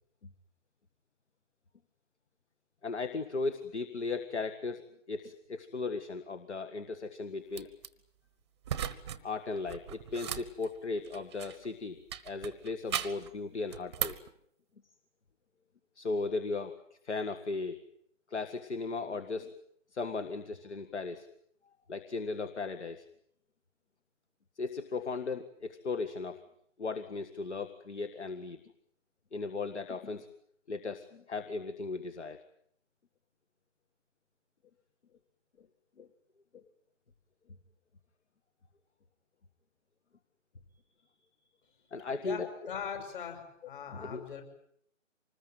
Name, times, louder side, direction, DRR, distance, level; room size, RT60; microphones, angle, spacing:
voice 1, 2.8-7.7 9.2-12.0 12.2-14.1 16.0-17.8 18.3-19.5 19.9-21.3 21.9-23.0 24.6-26.4 26.8-28.6 29.3-30.3 30.7-32.4 36.0-36.1 36.5-36.6 41.9-42.7 44.0-44.2, left 4 dB, 60° left, 10 dB, 1.9 m, -36 dB
sound 1, 7.5-7.9 8.6-9.2 9.5-11.7 12.1-13.3 13.7-14.3, right 9 dB, 20° right, 1.0 m, -37 dB
voice 2, 42.2-44.4, left 7 dB, 40° left, 6 dB, 6.6 m, -41 dB
25.5 x 20.5 x 9.2 m, 0.69 s
figure-of-eight pair, 150°, 38 cm